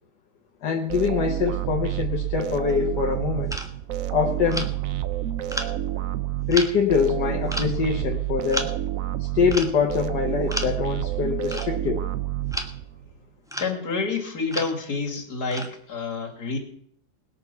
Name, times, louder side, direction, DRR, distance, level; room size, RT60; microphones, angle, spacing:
voice 1, 0.6-3.5 4.1-4.7 6.5-8.7 9.3-12.1, left 6 dB, 85° left, 1 dB, 1.8 m, -24 dB
sound 1, 0.9-13.1, right 13 dB, 60° right, 1.1 m, -29 dB
sound 2, 2.7-2.9 3.5-3.7 4.5-4.8 5.5-5.7 6.5-6.7 7.5-7.7 8.5-8.7 9.5-9.8 10.5-10.8 11.5-12.0 12.5-12.7 13.5-13.8 14.5-14.7 15.5-15.8, equal, ahead, 1.0 m, -32 dB
voice 2, 13.6-16.6, left 4 dB, 65° left, -1 dB, 3.1 m, -28 dB
20.5 x 6.9 x 5.8 m, 0.64 s
omnidirectional pair, 1.8 m